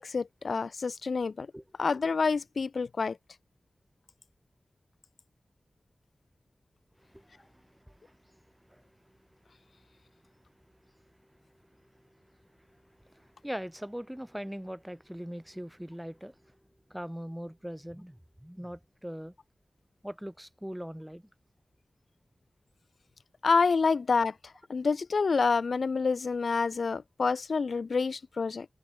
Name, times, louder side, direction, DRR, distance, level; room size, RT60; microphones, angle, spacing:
voice 1, 0.0-1.5 1.8-3.2 23.4-24.3 24.7-28.7, left 4 dB, 85° left, 0.3 m, -27 dB
voice 2, 7.0-9.2 10.1-10.2 10.5-16.6 16.9-19.4 20.0-21.3, equal, 5° right, 1.2 m, -43 dB
wide cardioid pair, 70°, 0 cm